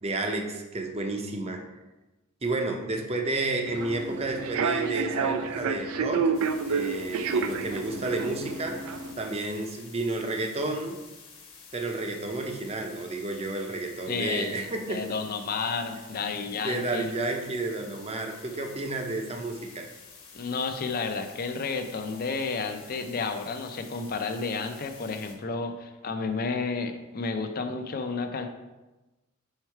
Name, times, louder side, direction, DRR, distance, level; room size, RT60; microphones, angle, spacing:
voice 1, 0.0-1.6 2.4-6.3 6.7-8.8 9.2-11.0 11.7-15.0 16.6-19.9, right 2 dB, 30° right, 3 dB, 0.6 m, -31 dB
Human voice / Subway metro underground, 3.7-9.1, right 5 dB, 80° right, 0.4 m, -29 dB
sound 1, 6.3-25.4, left 5 dB, 65° left, 1.3 m, -50 dB
voice 2, 14.1-17.1 20.3-28.5, left 4 dB, 45° left, 7 dB, 0.5 m, -31 dB
4.6 x 4.4 x 4.6 m, 1.1 s
head